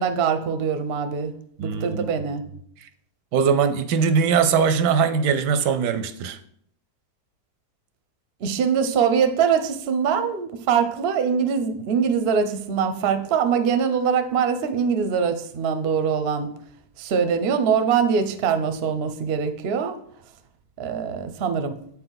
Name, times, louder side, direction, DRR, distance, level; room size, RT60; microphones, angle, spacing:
voice 1, 0.0-1.3 1.6-2.4 8.4-16.5 17.0-20.0 20.8-21.8, right 6 dB, 55° right, 8 dB, 0.7 m, -23 dB
voice 2, 1.6-2.1 2.8-2.9 3.3-6.4, right 6 dB, 85° right, 10 dB, 1.2 m, -21 dB
8.0 x 4.5 x 3.9 m, 0.65 s
omnidirectional pair, 1.8 m